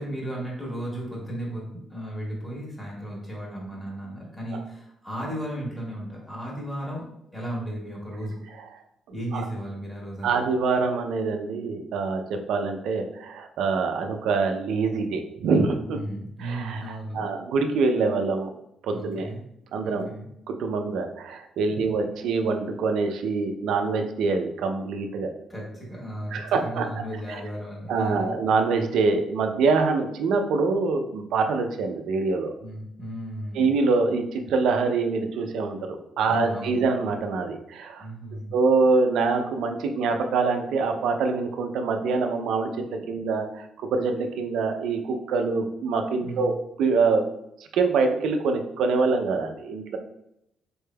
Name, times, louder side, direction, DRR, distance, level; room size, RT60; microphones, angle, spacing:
voice 1, 0.0-7.1 7.3-8.4 9.1-10.4 15.9-17.3 18.9-19.4 19.8-20.3 21.7-22.1 25.5-28.4 32.6-33.7 36.2-36.9 38.0-38.5 46.2-46.5, right 1 dB, 15° left, -3 dB, 1.5 m, -35 dB
voice 2, 10.2-16.0 16.4-18.6 18.8-19.3 19.7-20.1 20.5-25.3 26.3-26.9 27.3-27.4 27.9-32.5 33.5-38.1 38.5-46.5 46.8-47.2 47.7-50.0, right 4 dB, 80° right, 5 dB, 0.4 m, -25 dB
4.2 x 3.3 x 2.2 m, 0.79 s
cardioid pair, 90°, 0 cm